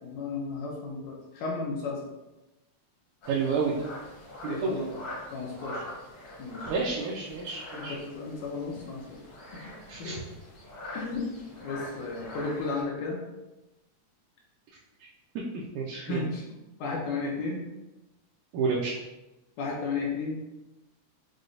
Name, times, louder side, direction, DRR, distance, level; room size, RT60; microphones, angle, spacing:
voice 1, 0.0-2.0 4.5-4.9 5.3-5.8 6.4-6.7 7.7-9.3 9.5-9.7 10.0-10.3 10.9-11.3 11.6-13.2 15.9-16.5 16.8-17.6 19.6-20.4, left 3 dB, 80° left, -2 dB, 2.0 m, -34 dB
sound 1, 3.2-12.8, left 1 dB, 50° left, 1.1 m, -44 dB
voice 2, 3.3-3.9 4.4-4.9 6.7-8.0 9.9-10.1 15.0-15.1 15.4-15.5 15.8-16.2 18.5-19.0, right 5 dB, 80° right, -3 dB, 1.9 m, -30 dB
6.2 x 2.2 x 2.5 m, 0.99 s
omnidirectional pair, 3.5 m